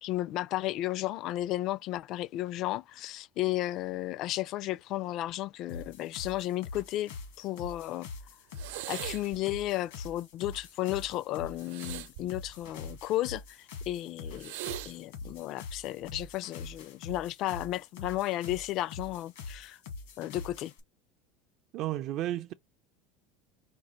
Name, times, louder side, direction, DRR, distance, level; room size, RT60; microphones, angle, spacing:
voice 1, 0.0-8.1 8.9-14.5 14.9-19.8 20.2-20.7, left 15 dB, 50° left, 0.3 m, -33 dB
sound 1, 5.7-20.8, left 4 dB, 85° left, 1.7 m, -44 dB
sound 2, 8.5-9.4 11.6-13.1 14.3-14.9 16.0-16.3, right 15 dB, 85° right, 0.7 m, -41 dB
voice 2, 21.7-22.5, right 14 dB, 50° right, 0.4 m, -32 dB
5.1 x 2.4 x 4.2 m
supercardioid pair, 145°, 0 cm